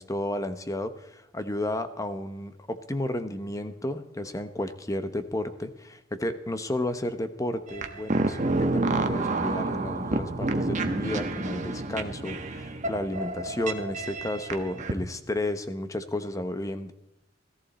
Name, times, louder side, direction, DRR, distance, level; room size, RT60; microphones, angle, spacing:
voice 1, 0.0-16.9, left 1 dB, 20° left, 10 dB, 0.9 m, -32 dB
sound 1, 7.7-14.9, right 2 dB, 40° right, 1.1 m, -29 dB
17.0 x 14.0 x 4.2 m, 0.84 s
head